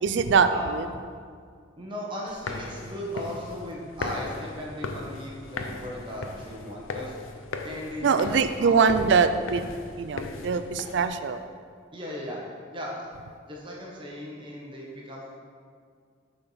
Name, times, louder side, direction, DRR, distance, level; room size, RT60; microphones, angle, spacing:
voice 1, 0.0-0.8 8.0-9.7 10.0-11.4, right 5 dB, 60° right, 10 dB, 0.3 m, -23 dB
voice 2, 1.8-7.1 7.6-8.8 11.9-12.4 12.7-12.9 13.4-15.4, equal, 25° right, -3 dB, 0.9 m, -37 dB
sound 1, 2.3-11.1, left 3 dB, 90° left, 0.6 m, -38 dB
6.8 x 4.3 x 5.5 m, 2.1 s
head